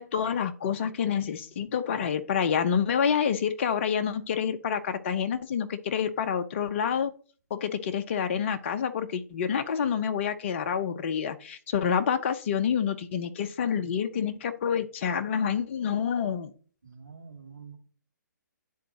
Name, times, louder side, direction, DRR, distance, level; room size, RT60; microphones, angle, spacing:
voice 1, 0.0-7.1 7.5-16.5, left 7 dB, 40° left, 9 dB, 0.6 m, -28 dB
voice 2, 16.8-17.8, right 5 dB, 75° right, -2 dB, 1.5 m, -46 dB
10.5 x 3.9 x 2.8 m, 0.41 s
figure-of-eight pair, 130°, 10 cm